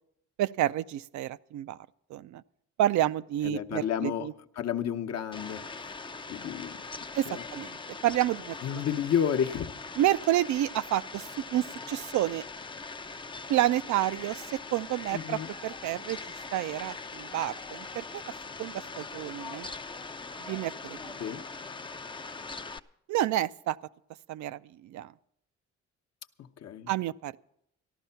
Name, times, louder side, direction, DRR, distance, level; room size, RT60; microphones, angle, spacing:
voice 1, 0.4-1.8 2.1-2.4 2.8-4.3 7.1-7.8 8.0-8.8 10.0-12.4 13.5-14.4 14.7-16.2 16.5-18.2 18.6-19.7 20.4-21.1 23.1-23.8 24.3-25.1 26.9-27.4, right 13 dB, 70° right, 0.4 m, -29 dB
voice 2, 3.4-4.3 4.6-5.9 6.3-6.9 7.3-7.4 8.6-9.7 15.1-15.5 21.2-21.4 26.4-26.9, left 9 dB, 55° left, 0.9 m, -31 dB
Fowl, 5.3-22.8, left 4 dB, 15° left, 0.4 m, -41 dB
14.5 x 11.5 x 5.6 m
cardioid pair, 90°, 30 cm